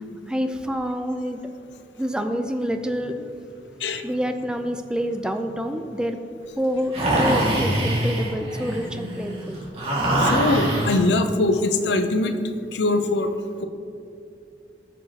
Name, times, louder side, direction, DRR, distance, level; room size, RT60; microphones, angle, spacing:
voice 1, 0.3-1.4 2.0-3.4 4.0-6.2 6.6-9.6, equal, 5° right, 6 dB, 0.5 m, -27 dB
sound 1, 6.9-11.0, right 1 dB, 35° right, 2.0 m, -23 dB
voice 2, 10.2-12.4 12.7-13.3, left 2 dB, 80° left, 7 dB, 0.7 m, -22 dB
14.5 x 6.6 x 2.9 m, 2.5 s
head